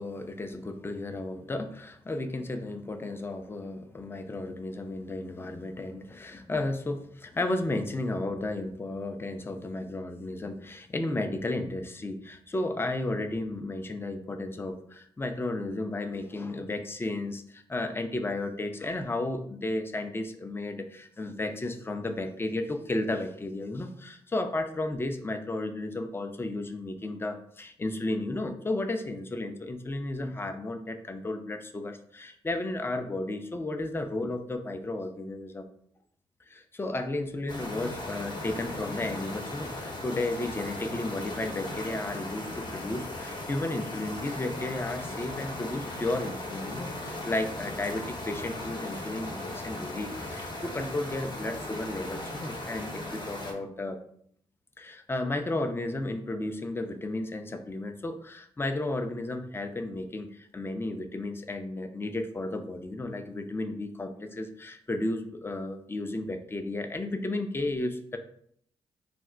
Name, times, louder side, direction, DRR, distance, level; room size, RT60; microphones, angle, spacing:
voice 1, 0.0-35.7 36.5-54.0 54.8-68.2, left 2 dB, 15° left, 7 dB, 0.4 m, -33 dB
sound 1, 37.5-53.5, left 1 dB, 35° left, 0.9 m, -38 dB
2.4 x 2.1 x 3.7 m, 0.65 s
hypercardioid pair, 45°, 13 cm